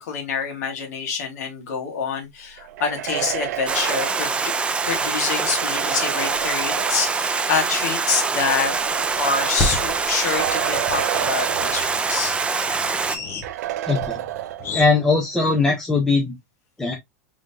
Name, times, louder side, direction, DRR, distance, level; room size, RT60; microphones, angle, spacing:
voice 1, 0.0-4.5 4.9-8.7 9.2-12.4, left 6 dB, 80° left, 1.8 m, -26 dB
sound 1, 2.6-7.3 8.2-12.4 12.7-12.8 13.4-15.0, right 13 dB, 80° right, 0.6 m, -31 dB
Stream, 3.7-13.2, right 4 dB, 10° right, 0.4 m, -24 dB
sound 2, 9.6-14.9, left 2 dB, 30° left, 1.2 m, -32 dB
voice 2, 13.9-14.2 14.7-16.3 16.8-16.9, left 3 dB, 5° left, 0.9 m, -20 dB
3.7 x 3.5 x 2.7 m
supercardioid pair, 140°, 9 cm